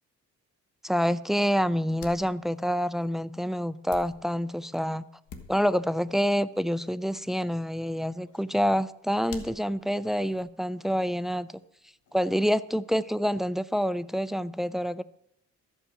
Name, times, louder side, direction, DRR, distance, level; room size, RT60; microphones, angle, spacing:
voice 1, 0.8-5.0 5.5-11.5 12.1-15.0, equal, ahead, 17 dB, 0.3 m, -27 dB
sound 1, 2.0-5.0 5.3-5.9 6.2-6.5 6.7-10.6 11.1-12.2, left 5 dB, 75° left, 1.3 m, -49 dB
13.0 x 5.6 x 7.5 m, 0.79 s
cardioid pair, 90°, 30 cm